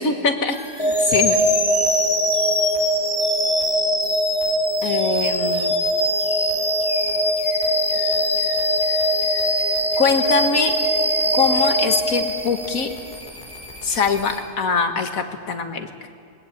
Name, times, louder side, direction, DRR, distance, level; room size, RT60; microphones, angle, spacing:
voice 1, 0.0-1.4 4.8-5.7 10.0-10.7 11.3-12.9 13.8-15.9, left 5 dB, 85° left, 6 dB, 1.9 m, -22 dB
sound 1, 0.5-14.4, left 1 dB, 40° left, 4.3 m, -40 dB
sound 2, 0.8-12.9, equal, 20° left, 2.8 m, -21 dB
21.5 x 21.0 x 8.7 m, 2.2 s
omnidirectional pair, 1.4 m